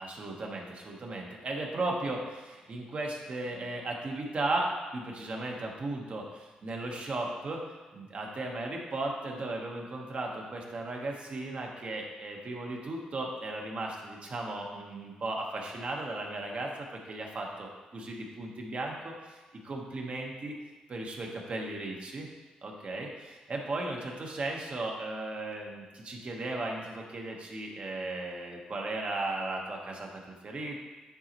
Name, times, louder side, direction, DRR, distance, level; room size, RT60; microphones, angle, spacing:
voice 1, 0.0-7.6 7.9-19.4 19.6-20.5 20.9-22.3 22.6-30.8, right 2 dB, 50° right, 0 dB, 1.2 m, -36 dB
9.6 x 4.1 x 3.0 m, 1.3 s
cardioid pair, 75°, 3 cm